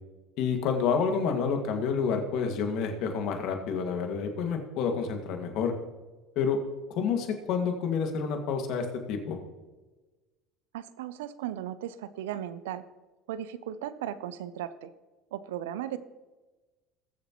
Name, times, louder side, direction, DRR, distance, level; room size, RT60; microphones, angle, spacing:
voice 1, 0.4-5.7 6.4-6.6 7.0-9.4, left 6 dB, 60° left, 4 dB, 2.0 m, -29 dB
voice 2, 10.7-12.8 13.3-14.9 15.3-16.0, right 11 dB, 80° right, 15 dB, 0.6 m, -36 dB
21.5 x 7.2 x 3.1 m, 1.2 s
hypercardioid pair, 80°, 0 cm